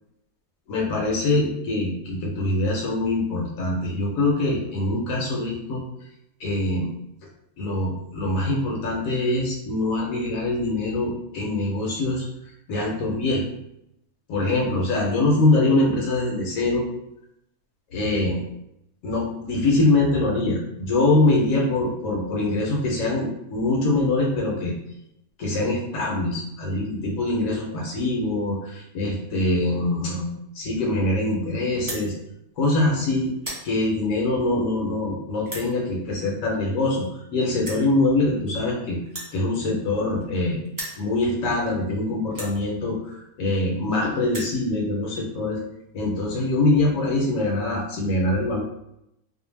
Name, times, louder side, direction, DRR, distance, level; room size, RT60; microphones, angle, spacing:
voice 1, 0.7-5.8 6.4-6.9 7.6-12.3 12.7-13.4 14.3-16.8 17.9-18.4 19.0-24.7 25.4-30.3 30.5-32.1 32.6-33.3 33.6-39.0 39.3-40.6 41.0-45.6 45.9-48.6, left 2 dB, 70° left, -2 dB, 1.0 m, -23 dB
sound 1, 31.7-32.1 32.7-32.9 33.2-33.7 34.4-34.5 35.4-35.7 36.7-36.8 37.0-37.1 37.6-37.9 39.0-40.4 40.6-41.0 41.7-41.8 42.3-42.6 43.5-43.6 43.8-43.9 44.1-44.6, right 1 dB, 35° right, 0.3 m, -35 dB
2.6 x 2.1 x 3.0 m, 0.81 s
omnidirectional pair, 1.6 m